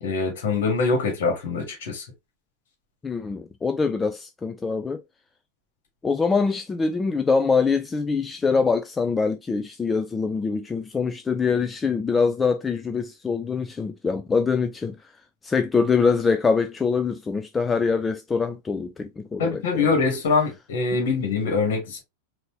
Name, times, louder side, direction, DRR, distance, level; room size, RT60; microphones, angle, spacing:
voice 1, 0.0-2.0 19.4-22.0, left 4 dB, 55° left, 2.0 m, -24 dB
voice 2, 3.0-5.0 6.0-15.0 15.4-19.9 20.9-21.1, left 5 dB, 15° left, 0.4 m, -24 dB
5.2 x 2.8 x 2.9 m
figure-of-eight pair, 90°, 0 cm